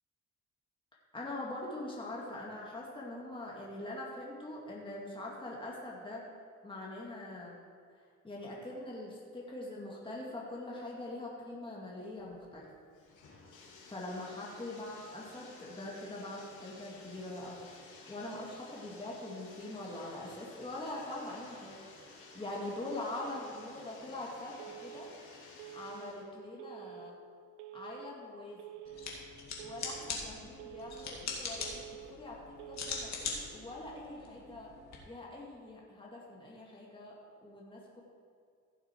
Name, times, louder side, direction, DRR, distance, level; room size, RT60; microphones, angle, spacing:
voice 1, 1.1-6.3 6.6-7.6 8.2-12.7 13.9-17.6 18.1-25.1 25.7-27.2 27.7-28.8 29.6-34.7 35.1-38.0, left 2 dB, 15° left, -4 dB, 2.1 m, -43 dB
Bathtub (filling or washing), 12.2-26.2, left 3 dB, 80° left, 2.7 m, -55 dB
Telephone, 24.6-25.1 25.6-26.1 26.6-27.1 27.6-28.1 28.6-29.1 29.6-30.1 30.6-31.1 31.6-32.1 32.6-33.1, right 13 dB, 90° right, 0.7 m, -48 dB
sound 1, 28.9-35.0, left 4 dB, 60° left, 2.3 m, -42 dB
15.5 x 6.6 x 4.5 m, 2.3 s
cardioid pair, 90°, 30 cm